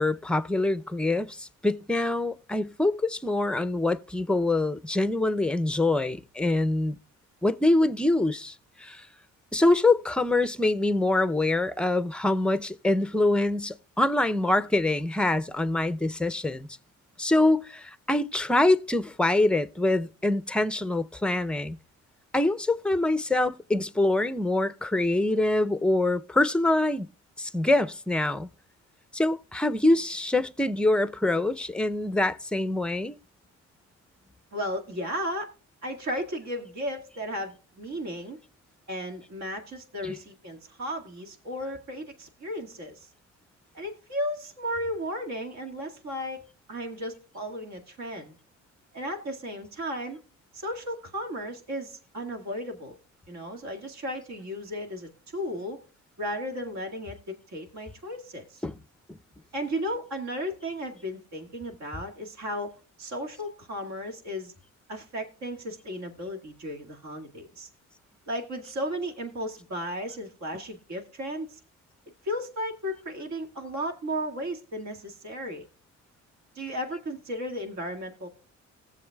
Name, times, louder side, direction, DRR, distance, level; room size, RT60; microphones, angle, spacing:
voice 1, 0.0-7.0 7.4-9.1 9.5-16.7 17.2-21.8 22.3-27.1 27.4-28.5 29.1-33.2 40.0-40.2 58.6-58.8 59.1-59.2, left 2 dB, 5° left, 0.5 m, -25 dB
voice 2, 34.5-35.5 35.8-38.4 38.9-43.1 43.7-46.4 46.7-48.4 48.9-50.2 50.5-53.0 53.3-55.8 56.2-58.6 59.5-62.7 63.0-64.5 64.9-67.7 68.3-71.6 72.2-75.6 76.6-78.3, equal, 65° right, 2.0 m, -34 dB
18.0 x 7.2 x 2.3 m
cardioid pair, 90°, 30 cm